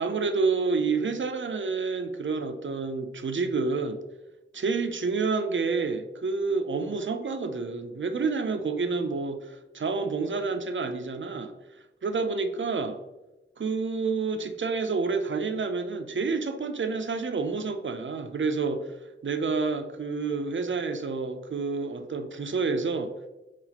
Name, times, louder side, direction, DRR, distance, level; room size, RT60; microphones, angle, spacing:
voice 1, 0.0-4.0 4.5-11.5 12.0-13.0 13.6-19.0 19.2-23.1, right 4 dB, 65° right, 7 dB, 0.5 m, -29 dB
5.6 x 2.5 x 2.8 m, 1.0 s
wide cardioid pair, 45°, 21 cm